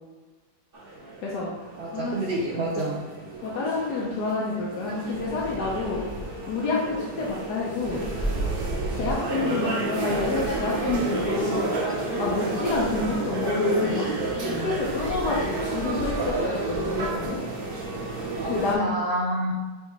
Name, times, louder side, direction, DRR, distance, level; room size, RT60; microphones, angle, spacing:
sound 1, 0.7-18.7, right 2 dB, 35° right, 1.3 m, -30 dB
voice 1, 1.2-2.2 2.5-2.8 3.4-6.0 6.5-8.1 8.9-11.7 12.2-14.1 14.6-17.4 18.5-18.9, left 3 dB, 70° left, -4 dB, 1.4 m, -28 dB
voice 2, 1.8-3.1 18.7-19.5, right 1 dB, 65° right, -2 dB, 0.6 m, -28 dB
9.0 x 3.4 x 3.3 m, 1.3 s
omnidirectional pair, 1.9 m